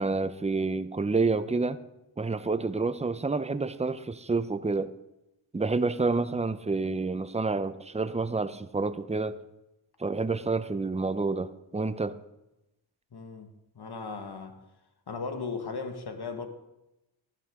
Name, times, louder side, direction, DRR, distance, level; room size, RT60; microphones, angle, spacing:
voice 1, 0.0-1.8 2.2-4.9 5.5-9.4 10.0-12.2, right 3 dB, 15° right, 0.7 m, -28 dB
voice 2, 13.1-13.5 13.7-14.6 15.1-16.5, left 4 dB, 55° left, 1.7 m, -36 dB
14.0 x 11.0 x 3.7 m
cardioid pair, 55°, 48 cm